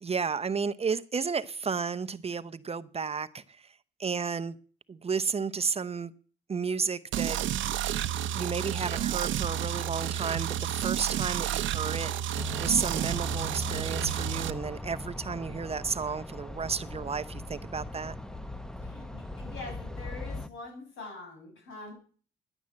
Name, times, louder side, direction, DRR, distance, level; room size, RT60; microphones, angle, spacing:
voice 1, 0.0-3.4 4.0-4.6 4.9-6.1 6.5-7.4 8.3-18.1, right 5 dB, 30° right, 0.7 m, -32 dB
sound 1, 7.1-14.5, right 11 dB, 75° right, 0.8 m, -31 dB
sound 2, 12.3-20.5, left 2 dB, 5° left, 0.8 m, -39 dB
voice 2, 18.8-21.9, left 3 dB, 85° left, 7.1 m, -44 dB
11.0 x 10.0 x 7.4 m
cardioid pair, 90°, 20 cm